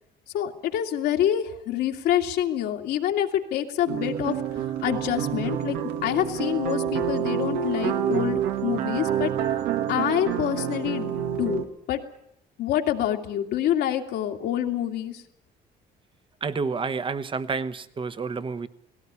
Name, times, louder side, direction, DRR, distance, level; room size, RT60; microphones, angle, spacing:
voice 1, 0.3-9.3 9.9-11.6 11.9-12.0 12.6-15.2, left 11 dB, 80° left, 3 dB, 2.4 m, -27 dB
sound 1, 3.9-11.7, right 9 dB, 90° right, 2.0 m, -28 dB
voice 2, 16.4-18.7, right 4 dB, 30° right, 13 dB, 1.2 m, -29 dB
18.5 x 17.5 x 9.8 m, 0.77 s
cardioid pair, 110°, 17 cm